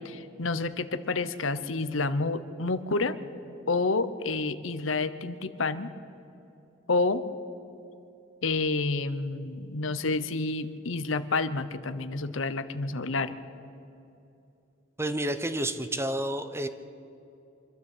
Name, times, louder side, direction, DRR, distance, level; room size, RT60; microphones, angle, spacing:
voice 1, 0.0-3.2 3.7-5.9 6.9-7.2 8.4-13.4, left 3 dB, 85° left, 12 dB, 1.0 m, -29 dB
voice 2, 15.0-16.7, right 1 dB, 15° right, 10 dB, 0.9 m, -30 dB
25.5 x 12.5 x 8.5 m, 2.7 s
head